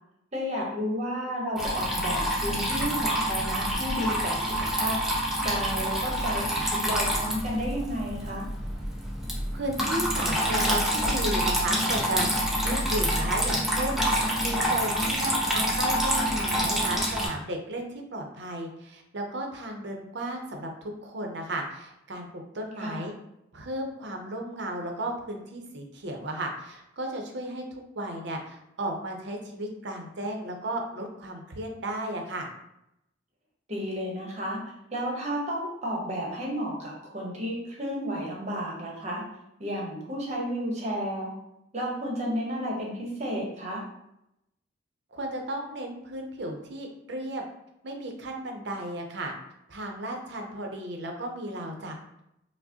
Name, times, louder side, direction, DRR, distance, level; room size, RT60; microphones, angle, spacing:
voice 1, 0.3-5.0 5.4-8.5 22.8-23.1 33.7-34.6 34.9-39.2 39.6-41.3 41.7-43.8, equal, 35° right, -2 dB, 0.9 m, -32 dB
Water tap faucet / Trickle dribble, 1.6-17.3, equal, ahead, 0.5 m, -27 dB
voice 2, 9.5-12.3 12.6-14.0 14.4-23.1 23.5-32.5 45.1-47.4 47.8-49.3 49.7-52.2, right 1 dB, 65° right, 2 dB, 0.6 m, -34 dB
4.6 x 2.0 x 2.7 m, 0.82 s
head